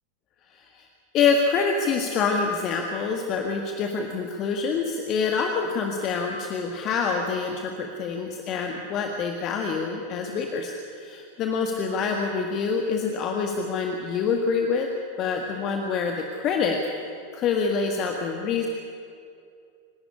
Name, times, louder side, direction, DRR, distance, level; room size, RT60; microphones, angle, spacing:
voice 1, 0.5-0.9 1.1-14.9 15.2-16.8 17.3-18.7, left 5 dB, 35° left, 3 dB, 1.7 m, -26 dB
26.5 x 12.0 x 10.0 m, 2.4 s
figure-of-eight pair, 90°, 0 cm